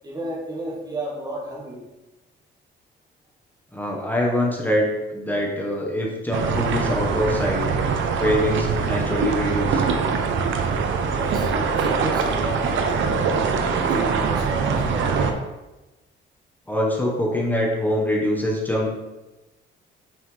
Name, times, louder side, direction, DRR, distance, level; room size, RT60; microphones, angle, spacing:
voice 1, 0.0-1.8 11.0-13.1 13.7-15.1, right 1 dB, 20° right, -2 dB, 1.7 m, -33 dB
voice 2, 3.7-7.7 8.2-9.8 16.7-18.9, left 1 dB, 10° left, -2 dB, 1.3 m, -24 dB
sound 1, 6.3-15.3, right 5 dB, 75° right, 0.7 m, -23 dB
5.6 x 5.4 x 3.3 m, 1.1 s
cardioid pair, 90°, 20 cm